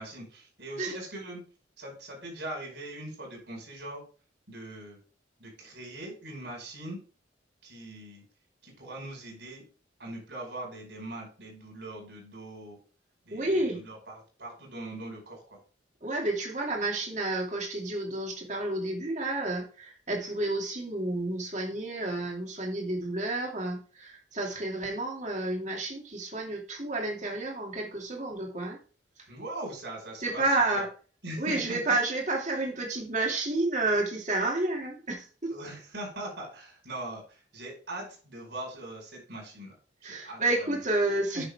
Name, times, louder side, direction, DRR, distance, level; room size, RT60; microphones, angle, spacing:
voice 1, 0.0-1.4 1.8-4.0 4.5-5.0 5.4-7.0 7.6-8.2 8.6-9.6 10.0-12.8 13.3-15.6 29.3-30.9 31.2-31.8 35.5-39.8 40.0-40.8 41.3-41.5, right 1 dB, 60° right, -1 dB, 5.2 m, -41 dB
voice 2, 13.3-13.8 16.0-28.8 30.2-30.8 31.4-35.5 40.0-41.4, right 2 dB, 40° right, 0 dB, 2.4 m, -30 dB
9.2 x 6.8 x 3.5 m, 0.38 s
head